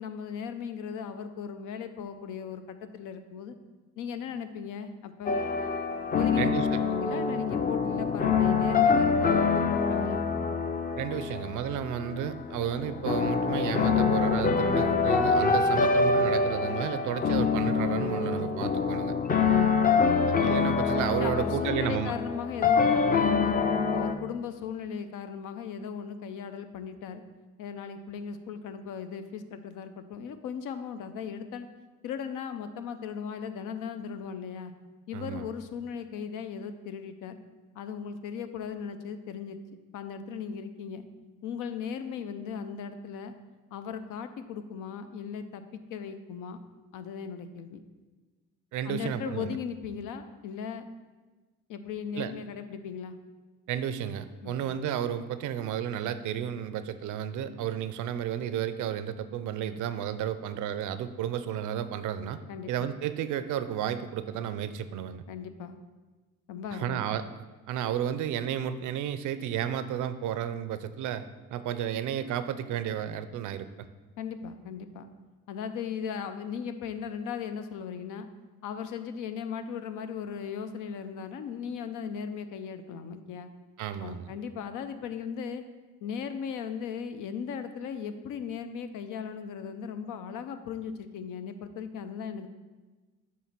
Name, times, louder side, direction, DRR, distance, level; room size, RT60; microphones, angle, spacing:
voice 1, 0.0-3.6 4.0-5.4 6.1-6.5 7.0-10.3 19.5-19.7 21.2-23.6 23.9-27.2 27.6-31.7 32.0-34.7 35.1-37.4 37.7-39.6 39.9-41.0 41.4-43.3 43.7-46.6 46.9-47.8 48.8-50.9 51.7-53.2 54.4-54.6 62.5-62.7 65.3-65.8 66.5-67.0 74.2-75.1 75.5-78.3 78.6-83.5 84.0-85.6 86.0-92.5, left 7 dB, 85° left, 9 dB, 0.6 m, -37 dB
sound 1, 5.3-24.1, left 5 dB, 30° left, 0.5 m, -26 dB
voice 2, 6.4-6.8 11.0-19.1 20.4-22.1 35.1-35.5 48.7-49.6 52.1-52.3 53.7-62.4 62.7-65.2 66.7-67.2 67.7-73.7 83.8-84.3, right 9 dB, 80° right, 12 dB, 0.5 m, -32 dB
7.6 x 3.2 x 5.8 m, 1.3 s
cardioid pair, 90°, 30 cm